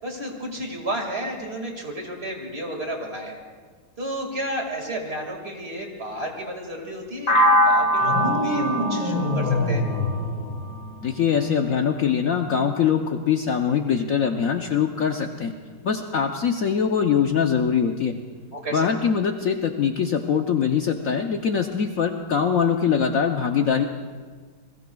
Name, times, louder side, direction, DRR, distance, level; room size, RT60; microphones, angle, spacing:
voice 1, 0.0-3.4 4.0-9.8 18.5-18.9, right 1 dB, 35° right, 1 dB, 2.3 m, -32 dB
sound 1, 7.3-11.2, equal, 35° left, 0.7 m, -22 dB
sound 2, 8.0-11.1, left 1 dB, 80° right, 6.5 m, -26 dB
voice 2, 11.0-15.5 15.8-18.1 18.7-23.9, left 7 dB, 60° left, 4 dB, 0.9 m, -22 dB
28.5 x 21.0 x 2.3 m, 1.5 s
omnidirectional pair, 2.0 m